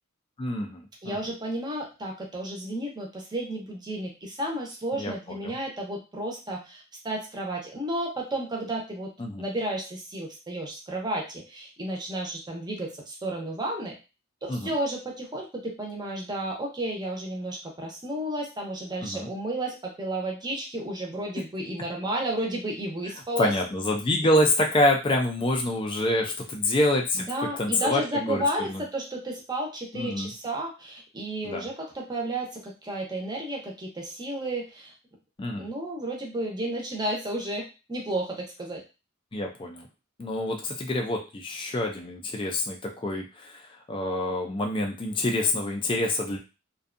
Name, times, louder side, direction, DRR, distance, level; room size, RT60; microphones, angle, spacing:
voice 1, 0.4-1.2 4.9-5.1 5.4-5.5 9.2-9.4 14.5-14.7 19.0-19.3 23.4-27.2 27.6-28.8 29.9-30.3 31.4-31.7 35.4-35.7 39.3-39.9 40.2-46.4, left 1 dB, 25° left, 1 dB, 0.4 m, -27 dB
voice 2, 1.0-9.1 9.4-14.0 14.4-23.5 27.1-34.9 35.6-38.8, right 1 dB, 20° right, -1 dB, 0.7 m, -32 dB
2.6 x 2.3 x 2.5 m, 0.29 s
head